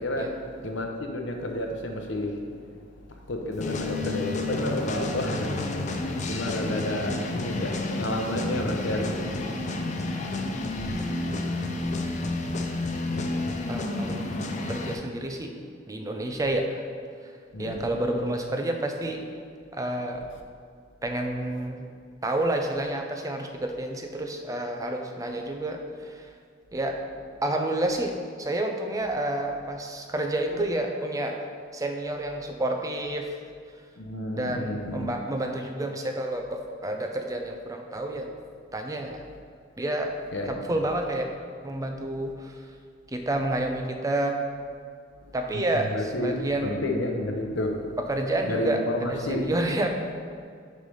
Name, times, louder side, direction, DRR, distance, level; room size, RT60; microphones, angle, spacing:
voice 1, 0.0-2.8 3.1-5.8 6.2-9.6 10.8-11.0 17.5-17.8 30.5-30.7 34.0-35.1 40.3-40.8 45.5-48.0 48.4-49.5, left 1 dB, 70° left, 3 dB, 0.8 m, -31 dB
sound 1, 3.6-15.0, left 2 dB, 40° left, 0.5 m, -30 dB
voice 2, 13.7-14.4 14.7-15.5 15.9-16.8 17.6-19.2 19.7-20.3 21.0-21.9 22.2-26.3 26.7-27.0 27.4-31.4 31.7-33.3 34.3-38.3 38.7-39.2 39.8-40.1 40.4-41.3 41.6-42.5 43.1-44.4 45.3-46.7 48.1-49.9, right 1 dB, 15° right, 3 dB, 0.5 m, -29 dB
6.3 x 3.3 x 5.4 m, 2.2 s
head